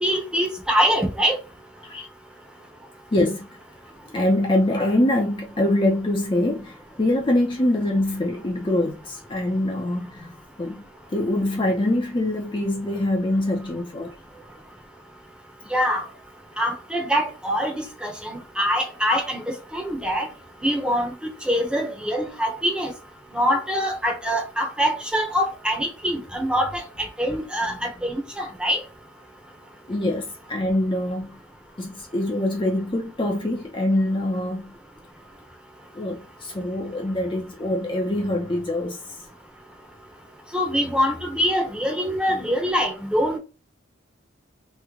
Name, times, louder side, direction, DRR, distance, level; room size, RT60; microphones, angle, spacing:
voice 1, 0.0-1.4 15.7-16.0 16.6-20.3 20.6-21.1 21.4-22.9 23.3-28.8 40.5-43.4, equal, 5° right, 0.8 m, -24 dB
voice 2, 3.1-3.5 4.1-10.3 10.6-14.1 27.7-27.9 29.9-31.4 31.8-34.7 35.9-39.2 42.1-42.4, left 1 dB, 25° left, 0.5 m, -24 dB
3.1 x 2.1 x 3.6 m
head